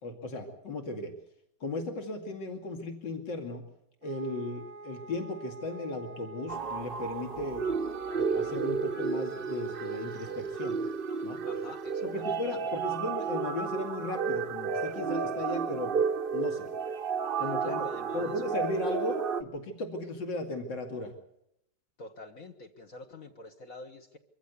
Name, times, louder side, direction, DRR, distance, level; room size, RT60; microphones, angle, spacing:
voice 1, 0.0-1.1 1.6-3.6 4.0-7.7 8.1-10.8 11.2-11.4 12.0-15.9 16.3-16.7 17.4-17.8 18.1-21.1, left 2 dB, 70° left, 4 dB, 3.1 m, -36 dB
Wind instrument woodwind instrument, 4.0-10.6, right 3 dB, 75° right, 1.6 m, -47 dB
sound 1, 6.5-19.4, right 5 dB, 40° right, 0.8 m, -32 dB
voice 2, 11.4-12.7 17.4-18.4 22.0-24.2, left 2 dB, 50° left, 4 dB, 1.5 m, -46 dB
24.0 x 14.5 x 8.3 m, 0.77 s
omnidirectional pair, 2.0 m